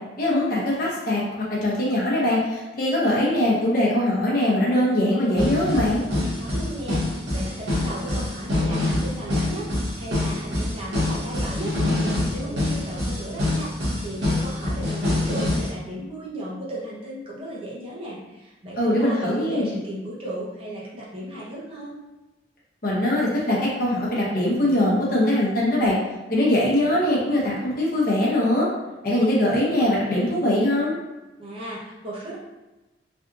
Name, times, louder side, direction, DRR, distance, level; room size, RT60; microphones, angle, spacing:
voice 1, 0.2-1.2 1.6-6.0 18.8-19.7 22.8-25.9 26.3-28.7 29.0-31.0, left 1 dB, 50° left, -5 dB, 0.8 m, -22 dB
sound 1, 3.1-3.2 5.3-15.7, left 2 dB, 70° right, 1.2 m, -25 dB
voice 2, 6.4-11.7 12.3-13.7 14.0-21.9 31.4-32.4, right 1 dB, 30° right, -7 dB, 0.8 m, -35 dB
3.4 x 2.5 x 2.6 m, 1.1 s
head